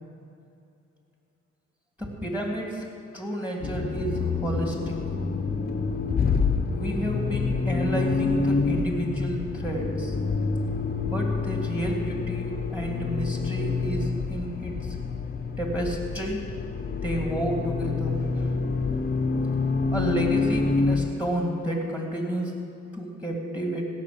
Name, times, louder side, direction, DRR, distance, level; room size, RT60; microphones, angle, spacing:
voice 1, 2.0-2.9 3.1-5.0 6.7-10.2 11.1-15.0 15.6-16.5 17.0-18.5 19.9-22.5 22.9-23.8, right 1 dB, 5° right, 0 dB, 2.9 m, -31 dB
Accelerating revving vroom, 3.6-21.1, left 4 dB, 30° left, 1.1 m, -27 dB
16.5 x 6.4 x 8.7 m, 2.7 s
cardioid pair, 90°, 30 cm